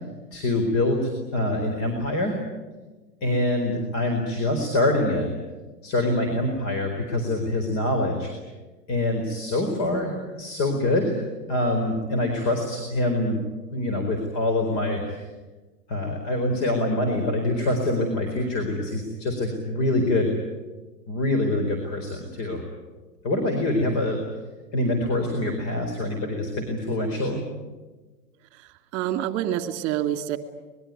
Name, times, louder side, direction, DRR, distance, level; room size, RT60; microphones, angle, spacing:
voice 1, 0.3-2.4 3.2-5.3 5.8-8.3 8.9-11.2 11.5-13.4 13.7-15.2 15.9-20.3 21.1-22.6 23.2-24.2 24.7-27.4, left 1 dB, 35° left, 3 dB, 4.5 m, -25 dB
voice 2, 28.5-30.4, right 12 dB, 30° right, 8 dB, 2.6 m, -27 dB
25.5 x 21.5 x 9.5 m, 1.3 s
hypercardioid pair, 125°, 48 cm